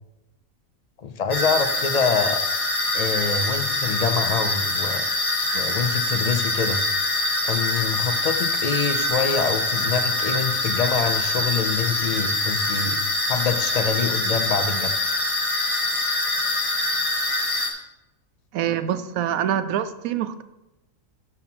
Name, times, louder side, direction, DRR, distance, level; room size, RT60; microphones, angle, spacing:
voice 1, 1.0-2.4 2.9-5.1 5.5-6.8 7.4-13.0 13.3-14.9, left 5 dB, 70° left, 8 dB, 0.3 m, -25 dB
sound 1, 1.3-17.7, left 2 dB, 25° left, 1.1 m, -24 dB
voice 2, 18.5-20.4, right 10 dB, 85° right, 11 dB, 1.0 m, -25 dB
5.8 x 5.6 x 5.9 m, 0.95 s
omnidirectional pair, 1.4 m